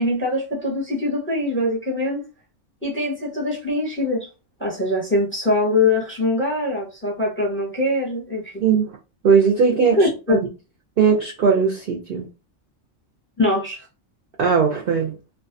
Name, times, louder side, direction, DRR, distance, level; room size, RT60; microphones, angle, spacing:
voice 1, 0.0-2.2 2.8-4.3 4.6-8.6 10.0-10.4 13.4-13.8, left 2 dB, 10° left, 0.7 m, -22 dB
voice 2, 8.6-9.0 9.2-10.4 11.0-12.3 14.4-15.1, right 6 dB, 60° right, 0.6 m, -19 dB
2.4 x 2.2 x 2.5 m
omnidirectional pair, 1.4 m